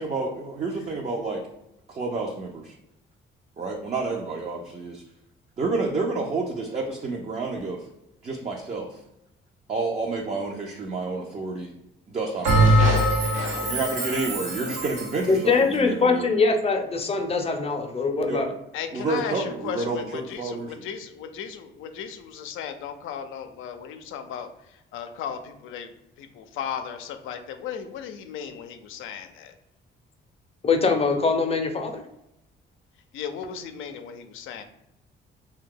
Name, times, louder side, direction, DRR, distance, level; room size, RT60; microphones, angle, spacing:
voice 1, 0.0-1.4 1.9-2.7 3.6-5.0 5.6-7.9 8.2-9.0 9.7-11.7 12.1-12.8 13.6-16.3 18.3-18.4 18.9-20.9, right 3 dB, 35° right, 0 dB, 0.5 m, -29 dB
Bell, 12.4-15.2, right 1 dB, 85° right, 0.9 m, -22 dB
voice 2, 13.2-14.8 18.7-25.9 26.2-29.5 33.1-34.6, left 8 dB, 85° left, 7 dB, 0.4 m, -36 dB
voice 3, 15.3-18.5 30.6-32.0, left 4 dB, 30° left, 5 dB, 0.5 m, -22 dB
2.7 x 2.3 x 3.7 m, 0.86 s
cardioid pair, 90°, 20 cm